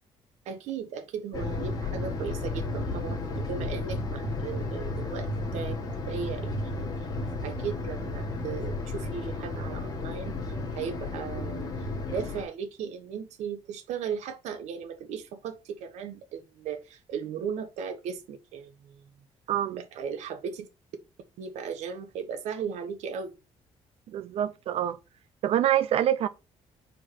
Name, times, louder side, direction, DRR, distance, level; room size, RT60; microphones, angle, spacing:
voice 1, 0.4-5.3 5.5-5.8 6.1-6.9 7.4-11.7 12.1-19.0 19.7-20.7 21.4-23.3, right 7 dB, 90° right, 1.2 m, -36 dB
sound 1, 1.3-12.4, left 2 dB, 35° left, 2.1 m, -33 dB
voice 2, 19.5-19.8 24.1-25.0 25.4-26.3, right 11 dB, 60° right, 0.7 m, -26 dB
4.8 x 4.8 x 6.0 m
cardioid pair, 150°, 12 cm